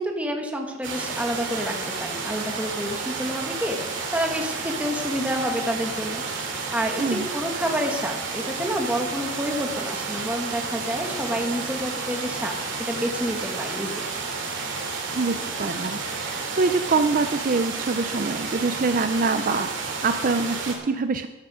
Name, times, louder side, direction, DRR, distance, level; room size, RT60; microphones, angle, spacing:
voice 1, 0.0-6.2 6.7-12.5 12.8-14.0, equal, 5° right, 2 dB, 1.6 m, -29 dB
sound 1, 0.8-20.7, right 4 dB, 70° right, 2.8 m, -31 dB
voice 2, 7.0-7.3 15.1-19.7 20.0-21.3, right 4 dB, 45° right, 9 dB, 0.5 m, -25 dB
12.5 x 12.5 x 5.0 m, 1.1 s
head